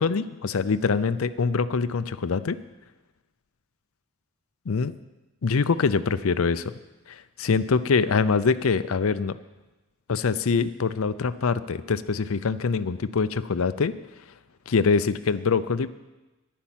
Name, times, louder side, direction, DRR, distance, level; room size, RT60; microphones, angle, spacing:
voice 1, 0.0-2.6 4.7-4.9 5.4-6.7 7.1-9.4 10.1-13.9 14.7-15.9, left 5 dB, 70° left, 13 dB, 0.5 m, -24 dB
10.0 x 10.0 x 7.4 m, 1.1 s
head